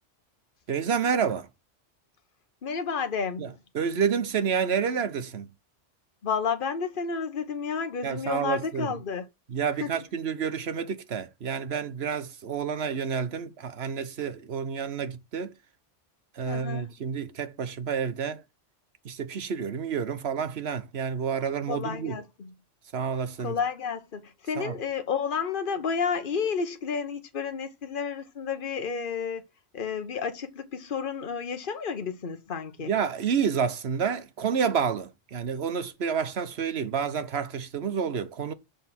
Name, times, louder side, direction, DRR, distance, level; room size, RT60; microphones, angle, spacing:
voice 1, 0.7-1.5 3.4-5.5 8.0-8.9 9.5-15.6 16.3-18.4 19.0-22.2 22.9-23.6 24.6-24.8 32.8-38.5, right 7 dB, 60° right, 1.2 m, -29 dB
voice 2, 2.6-3.5 6.2-9.3 9.8-9.9 16.4-16.9 21.7-22.5 23.4-29.4 29.7-32.9, left 6 dB, 45° left, 1.3 m, -31 dB
7.1 x 5.6 x 5.9 m
omnidirectional pair, 1.2 m